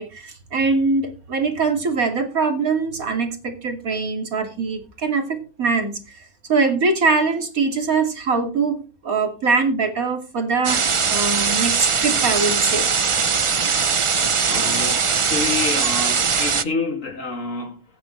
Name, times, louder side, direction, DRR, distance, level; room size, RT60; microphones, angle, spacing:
voice 1, 0.0-6.2 6.5-10.8 11.1-12.9, right 4 dB, 85° right, 3.0 m, -22 dB
sound 1, 10.6-16.6, right 5 dB, 45° right, 0.4 m, -20 dB
voice 2, 14.5-17.8, left 3 dB, 65° left, 2.8 m, -28 dB
17.5 x 9.4 x 3.2 m
omnidirectional pair, 1.4 m